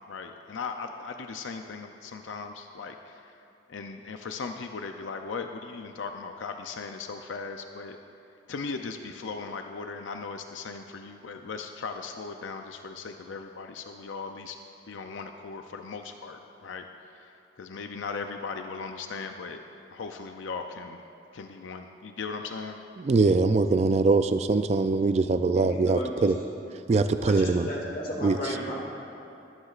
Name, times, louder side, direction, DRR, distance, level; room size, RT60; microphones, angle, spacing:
voice 1, 0.0-3.4 3.7-8.0 8.5-14.6 14.9-19.6 19.9-21.0 21.3-22.8, left 4 dB, 85° left, 5 dB, 0.5 m, -38 dB
voice 2, 23.0-26.4 26.9-27.7 28.2-28.5, right 3 dB, 35° right, 10 dB, 0.3 m, -23 dB
voice 3, 25.5-26.3 27.2-28.8, equal, 50° left, -2 dB, 2.2 m, -34 dB
23.0 x 9.5 x 2.5 m, 2.7 s
head